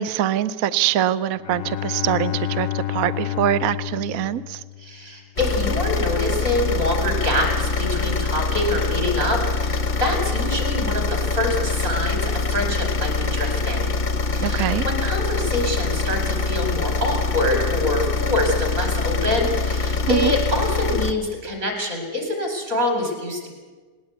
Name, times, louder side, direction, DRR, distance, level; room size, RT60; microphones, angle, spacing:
voice 1, 0.0-4.6 14.4-14.9 20.1-20.3, right 11 dB, 65° right, 15 dB, 0.8 m, -23 dB
Bowed string instrument, 1.3-5.1, left 12 dB, 85° left, 0.6 m, -29 dB
voice 2, 4.8-13.9 14.3-23.6, left 1 dB, 35° right, 3 dB, 5.3 m, -25 dB
sound 1, 5.4-21.1, left 4 dB, 35° left, 0.8 m, -24 dB
19.5 x 19.0 x 8.3 m, 1.4 s
omnidirectional pair, 2.4 m